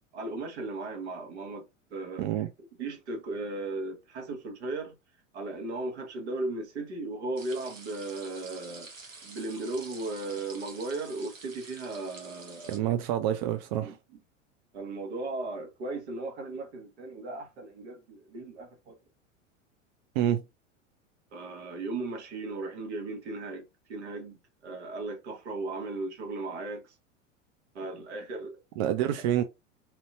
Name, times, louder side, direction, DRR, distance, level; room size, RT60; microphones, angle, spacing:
voice 1, 0.1-1.6 1.9-2.3 2.8-5.0 5.3-8.9 9.2-12.8 13.8-14.0 14.7-19.0 21.3-24.4 24.6-26.9 27.7-28.6, right 2 dB, 60° right, 1.6 m, -36 dB
sound 1, 7.4-12.8, right 3 dB, 80° right, 1.2 m, -48 dB
voice 2, 12.7-14.0 20.2-20.4 28.8-29.4, right 11 dB, 35° right, 0.5 m, -27 dB
4.3 x 4.0 x 2.5 m
figure-of-eight pair, 85°, 39 cm